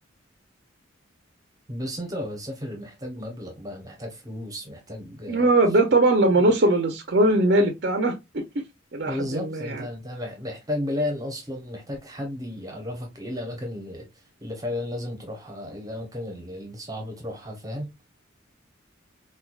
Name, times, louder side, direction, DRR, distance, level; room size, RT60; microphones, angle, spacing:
voice 1, 1.7-5.5 9.1-17.9, left 1 dB, 20° right, 0.8 m, -33 dB
voice 2, 5.3-8.4 8.9-9.8, right 2 dB, 55° right, 0.5 m, -20 dB
4.4 x 2.3 x 2.2 m
head